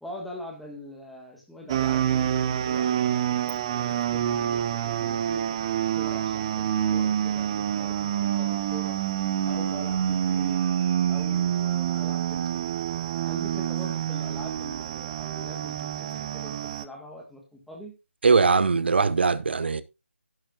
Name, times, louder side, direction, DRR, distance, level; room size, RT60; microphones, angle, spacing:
voice 1, 0.0-5.6 5.9-9.0 9.4-10.6 11.1-12.7 13.2-17.9, equal, ahead, 1.6 m, -43 dB
sound 1, 1.7-16.9, right 10 dB, 20° right, 0.6 m, -27 dB
voice 2, 18.2-19.8, right 4 dB, 50° right, 0.9 m, -21 dB
11.5 x 10.5 x 2.4 m
figure-of-eight pair, 155°, 7 cm